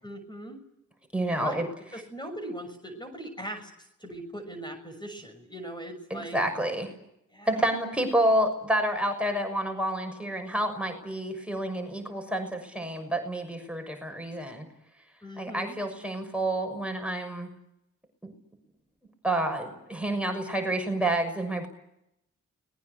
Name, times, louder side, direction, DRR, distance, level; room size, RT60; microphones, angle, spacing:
voice 1, 0.0-0.6 1.3-6.4 7.3-7.7 15.2-15.8, right 1 dB, 15° left, 5 dB, 6.4 m, -40 dB
voice 2, 1.1-1.7 6.1-6.9 7.4-14.7 15.4-17.5 19.2-21.7, right 1 dB, 5° right, 4 dB, 6.5 m, -29 dB
30.0 x 21.0 x 8.3 m, 0.81 s
cardioid pair, 50°, 31 cm